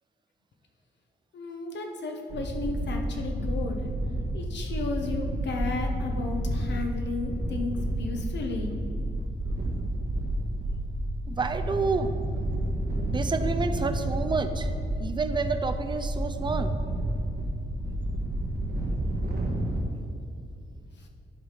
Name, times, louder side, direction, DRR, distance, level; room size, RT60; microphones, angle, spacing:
voice 1, 1.3-3.8 4.3-7.7 8.0-8.7, left 3 dB, 70° left, 3 dB, 1.1 m, -33 dB
sound 1, 2.3-19.8, right 1 dB, 60° right, 1.5 m, -30 dB
voice 2, 11.3-12.1 12.9-14.7 15.0-16.7, right 4 dB, 25° right, 8 dB, 0.6 m, -29 dB
11.0 x 4.9 x 5.1 m, 2.5 s
cardioid pair, 90°, 19 cm